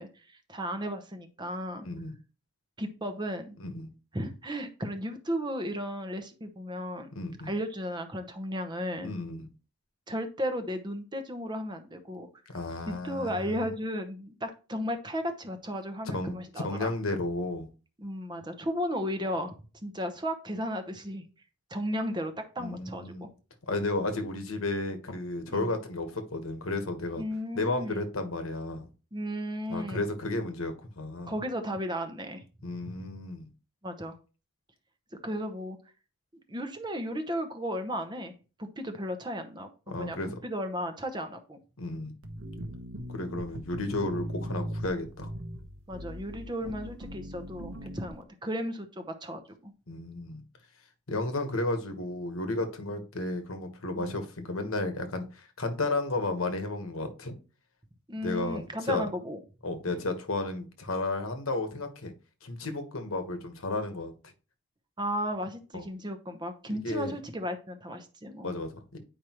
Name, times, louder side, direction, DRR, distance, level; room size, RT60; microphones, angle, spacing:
voice 1, 0.0-1.8 2.8-3.6 4.1-7.1 7.4-9.1 10.1-12.3 13.0-16.9 18.0-19.5 19.8-21.2 21.7-23.3 25.5-25.7 27.2-28.0 29.1-30.0 31.3-33.1 33.8-34.2 35.2-35.8 36.5-38.3 38.6-41.6 45.9-49.7 54.0-54.1 58.1-59.4 59.9-60.0 65.0-68.5, equal, 20° right, 7 dB, 0.8 m, -35 dB
voice 2, 1.8-2.1 3.6-3.9 7.1-7.5 9.0-9.5 12.5-13.7 16.0-17.7 22.6-23.3 23.7-27.2 27.5-28.9 29.7-31.3 32.6-33.5 39.9-40.4 41.8-42.1 43.1-45.3 49.9-50.4 51.1-57.3 58.2-59.1 59.6-62.1 62.4-64.1 65.7-65.8 66.7-67.1 68.4-69.0, left 2 dB, 75° left, 6 dB, 1.2 m, -33 dB
sound 1, 42.2-48.2, equal, 75° right, 1.0 m, -39 dB
9.2 x 4.9 x 3.0 m, 0.34 s
head